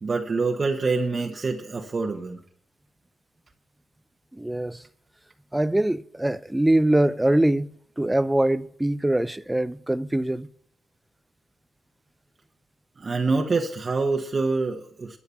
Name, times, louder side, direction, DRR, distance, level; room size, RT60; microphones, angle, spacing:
voice 1, 0.0-2.4 13.0-15.2, right 3 dB, 40° right, 1.2 m, -26 dB
voice 2, 4.3-4.9 5.5-7.7 8.0-10.5, right 1 dB, 10° right, 0.5 m, -23 dB
13.0 x 8.7 x 7.1 m
cardioid pair, 70°, 0 cm